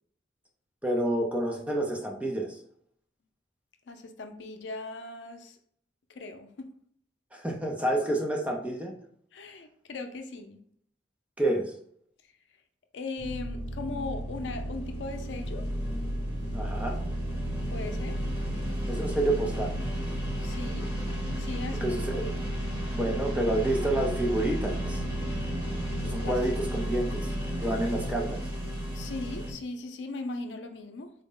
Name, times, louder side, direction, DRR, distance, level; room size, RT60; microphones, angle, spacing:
voice 1, 0.8-2.6 7.3-8.9 11.4-11.7 16.5-17.0 18.9-19.8 21.8-22.4 22.9-25.0 26.0-27.3 27.6-28.4, right 1 dB, 5° right, 0.5 m, -29 dB
voice 2, 3.9-5.6 6.1-6.7 9.3-10.6 12.2-12.3 12.9-15.6 17.7-18.2 20.4-20.9 21.4-22.4 26.2-26.4 28.9-31.1, left 3 dB, 80° left, 0.5 m, -38 dB
sound 1, 13.2-29.5, equal, 25° right, 1.0 m, -32 dB
3.9 x 2.1 x 3.7 m
head